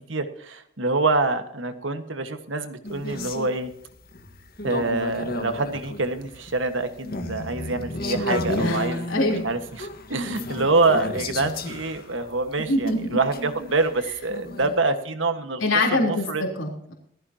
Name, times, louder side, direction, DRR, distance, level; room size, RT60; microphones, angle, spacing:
voice 1, 0.1-3.7 4.6-15.6 15.9-16.4, right 3 dB, 70° right, 8 dB, 1.6 m, -26 dB
sound 1, 2.8-14.8, left 2 dB, 50° left, 1.6 m, -33 dB
voice 2, 9.1-9.4 12.6-13.2 15.6-16.9, left 1 dB, 90° left, 0 dB, 3.7 m, -24 dB
19.5 x 14.5 x 2.9 m, 0.65 s
head